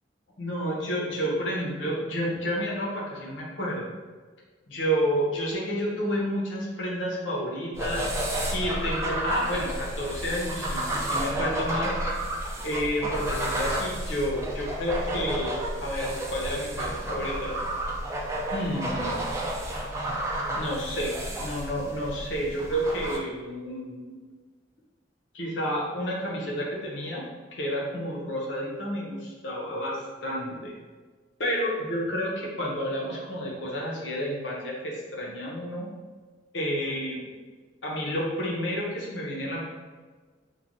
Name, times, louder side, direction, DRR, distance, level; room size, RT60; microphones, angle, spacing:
voice 1, 0.4-3.9 4.7-12.0 12.6-15.5 15.8-17.6 18.5-19.2 20.6-21.1 21.4-24.2 25.3-27.2 27.5-30.7 31.4-35.9 36.5-37.3 37.8-39.6, equal, 85° left, -3 dB, 0.8 m, -30 dB
sound 1, 7.7-23.2, right 1 dB, 15° right, 0.4 m, -31 dB
3.1 x 2.2 x 2.6 m, 1.4 s
head